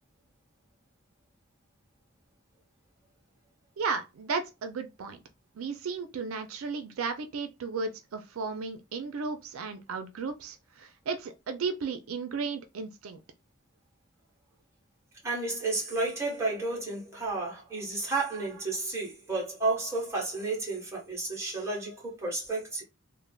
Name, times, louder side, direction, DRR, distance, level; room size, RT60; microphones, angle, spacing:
voice 1, 3.8-5.2 5.6-13.2, right 4 dB, 85° right, 0.4 m, -34 dB
voice 2, 15.2-22.8, right 3 dB, 15° right, 1.2 m, -32 dB
3.3 x 2.1 x 2.2 m
head